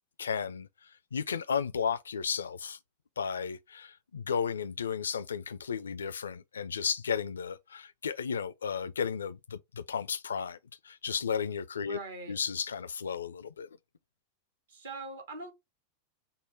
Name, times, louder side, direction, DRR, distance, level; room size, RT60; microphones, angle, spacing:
voice 1, 0.2-2.8 3.2-10.6 10.8-12.0 12.3-13.7, left 6 dB, 70° left, 0.4 m, -34 dB
voice 2, 11.9-12.3 14.7-15.5, right 3 dB, 65° right, 1.4 m, -42 dB
5.6 x 2.1 x 3.3 m
figure-of-eight pair, 90°, 0 cm